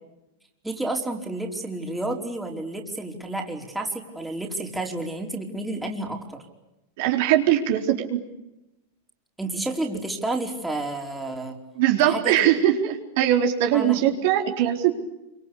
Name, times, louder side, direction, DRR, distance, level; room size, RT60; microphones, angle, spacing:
voice 1, 0.6-6.4 9.4-11.6 12.0-12.5 13.7-14.0, right 2 dB, 5° right, 1 dB, 4.6 m, -30 dB
voice 2, 7.0-8.2 11.8-14.9, right 11 dB, 60° right, 2 dB, 4.3 m, -21 dB
27.0 x 25.5 x 8.6 m, 0.95 s
hypercardioid pair, 110°, 0 cm